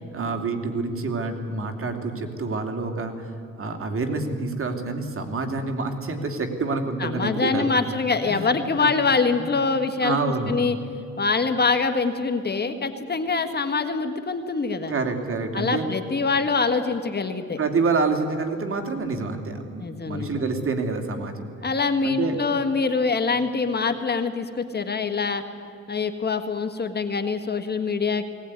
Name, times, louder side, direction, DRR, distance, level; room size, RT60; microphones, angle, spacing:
voice 1, 0.1-7.9 8.2-8.5 8.8-8.9 9.4-9.6 10.0-10.5 14.9-16.0 17.6-21.5 22.0-22.4, right 3 dB, 45° right, 5 dB, 2.9 m, -27 dB
voice 2, 7.0-10.2 10.5-10.8 11.2-14.9 15.5-17.6 19.8-20.4 21.6-25.4 25.9-28.3, left 4 dB, 35° left, 8 dB, 1.7 m, -24 dB
20.0 x 18.0 x 9.8 m, 2.4 s
cardioid pair, 90°, 30 cm